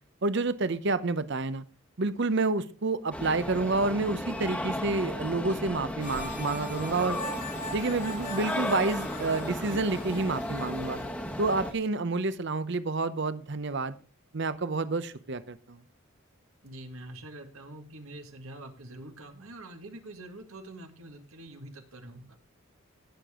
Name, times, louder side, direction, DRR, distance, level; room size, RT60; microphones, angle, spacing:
voice 1, 0.2-1.6 2.0-7.2 7.7-11.0 11.4-13.9 14.3-15.8, right 3 dB, 55° right, 14 dB, 0.8 m, -29 dB
sound 1, 3.1-11.7, left 1 dB, 5° left, 1.1 m, -35 dB
sound 2, 6.0-11.9, left 1 dB, 35° left, 1.7 m, -41 dB
voice 2, 16.6-22.4, right 1 dB, 80° right, 5 dB, 1.8 m, -45 dB
18.0 x 6.8 x 3.7 m, 0.36 s
head